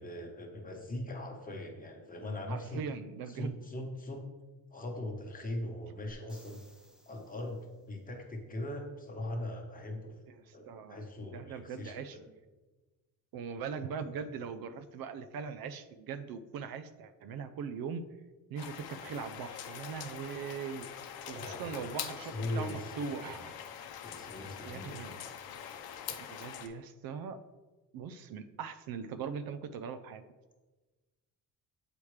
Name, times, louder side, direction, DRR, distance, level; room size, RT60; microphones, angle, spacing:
voice 1, 0.0-2.8 3.3-4.2 4.7-6.6 7.1-7.6 7.9-10.2 10.5-12.2 21.4-23.3 24.0-25.1, left 1 dB, 20° left, 1 dB, 1.1 m, -40 dB
voice 2, 2.5-3.6 10.3-11.0 11.3-12.2 13.3-18.1 18.5-20.9 21.3-23.6 24.6-25.2 26.3-27.4 27.9-30.2, right 6 dB, 70° right, 11 dB, 0.5 m, -40 dB
sound 1, 6.1-7.9 11.8-11.9, left 1 dB, ahead, 0.6 m, -61 dB
sound 2, 18.6-26.7, left 9 dB, 75° left, 0.7 m, -44 dB
7.1 x 5.0 x 3.2 m, 1.2 s
cardioid pair, 120°, 37 cm